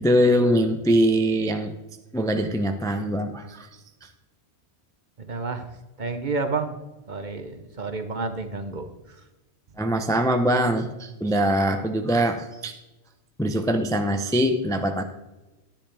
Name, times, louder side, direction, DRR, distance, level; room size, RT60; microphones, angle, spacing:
voice 1, 0.0-1.7 2.1-3.7 9.8-12.7 13.4-15.0, equal, 5° left, 6 dB, 0.5 m, -22 dB
voice 2, 5.2-5.7 6.0-6.8 7.1-8.8, right 3 dB, 45° right, 7 dB, 0.9 m, -30 dB
10.5 x 10.5 x 3.4 m, 1.0 s
omnidirectional pair, 1.2 m